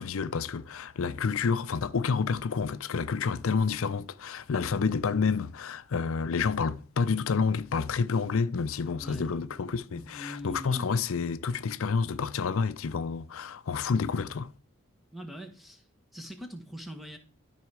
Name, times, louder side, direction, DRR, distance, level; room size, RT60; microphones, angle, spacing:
voice 1, 0.0-14.5, left 5 dB, 80° left, 0.5 m, -29 dB
voice 2, 9.0-9.4 9.9-10.9 15.1-15.8 16.1-17.2, equal, ahead, 1.1 m, -42 dB
12.5 x 4.9 x 4.7 m
head